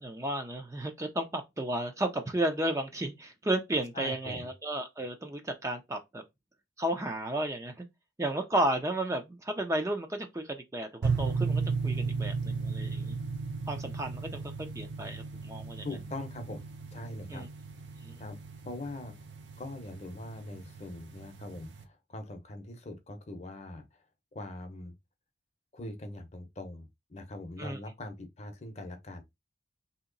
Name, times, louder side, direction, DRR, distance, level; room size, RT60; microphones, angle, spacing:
voice 1, 0.0-6.2 6.8-7.9 8.2-13.2 13.7-15.9 17.3-17.5 18.0-18.2 27.6-27.8, right 1 dB, 15° right, 0.5 m, -33 dB
voice 2, 3.9-4.5 15.8-17.5 18.2-18.4 18.6-19.1 19.6-24.0 24.3-24.9 25.7-29.2, left 2 dB, 40° left, 0.7 m, -42 dB
sound 1, 11.0-21.8, right 4 dB, 85° right, 0.6 m, -35 dB
2.9 x 2.8 x 3.8 m
head